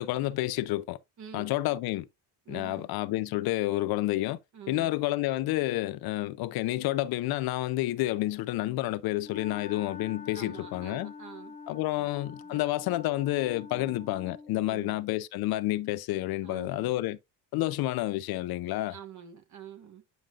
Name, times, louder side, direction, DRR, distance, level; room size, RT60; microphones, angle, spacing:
voice 1, 0.0-1.0 1.3-2.1 2.5-4.4 4.7-11.1 11.7-17.2 17.5-18.9, left 16 dB, 65° left, 0.6 m, -29 dB
voice 2, 1.2-1.5 2.4-2.9 4.5-5.0 10.3-11.6 11.9-12.1 12.4-12.6 13.7-14.1 14.7-15.0 16.4-16.9 18.9-20.0, right 9 dB, 45° right, 1.4 m, -47 dB
Wind instrument woodwind instrument, 9.2-14.6, left 4 dB, 20° left, 1.2 m, -45 dB
9.2 x 5.2 x 2.4 m
cardioid pair, 120°, 39 cm